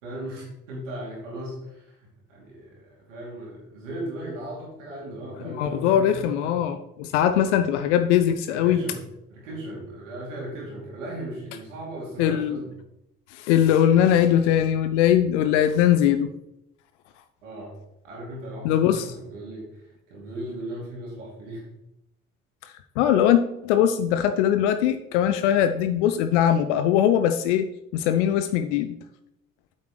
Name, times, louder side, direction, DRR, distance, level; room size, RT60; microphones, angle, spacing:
voice 1, 0.0-6.6 8.4-9.0 9.3-12.7 13.6-13.8 17.4-17.8 18.0-21.7, right 1 dB, 70° right, -3 dB, 2.7 m, -37 dB
voice 2, 5.4-8.8 12.2-12.6 13.3-16.3 18.6-19.1 23.0-27.7 27.9-28.9, left 10 dB, 65° left, 9 dB, 0.6 m, -21 dB
8.5 x 8.3 x 3.1 m, 0.85 s
figure-of-eight pair, 50°, 38 cm